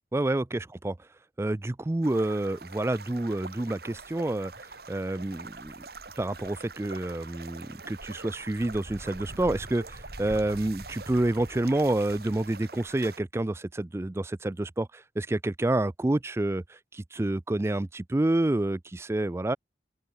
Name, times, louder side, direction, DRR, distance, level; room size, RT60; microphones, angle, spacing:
voice 1, 0.1-0.9 1.4-4.5 4.9-5.7 6.2-19.6, right 1 dB, 15° right, 0.4 m, -28 dB
sound 1, 2.0-13.2, right 3 dB, 60° right, 4.6 m, -44 dB
open air
head